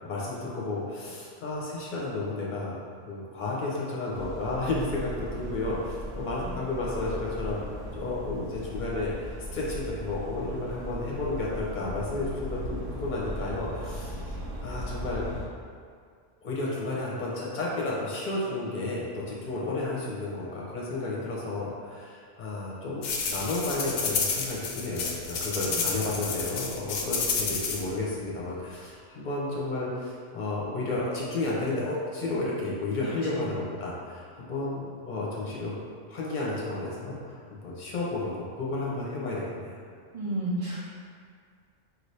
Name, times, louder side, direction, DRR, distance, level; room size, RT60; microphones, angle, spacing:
voice 1, 0.0-2.8 3.1-7.6 7.9-15.2 16.4-35.7 36.1-39.8, left 2 dB, 45° left, -5 dB, 0.9 m, -32 dB
sound 1, 4.1-15.5, equal, 65° right, 1.2 m, -38 dB
sound 2, 23.0-27.8, left 5 dB, 75° left, 0.9 m, -30 dB
voice 2, 40.1-40.8, right 1 dB, 35° right, -11 dB, 0.7 m, -32 dB
4.5 x 2.8 x 3.3 m, 2.1 s
omnidirectional pair, 1.2 m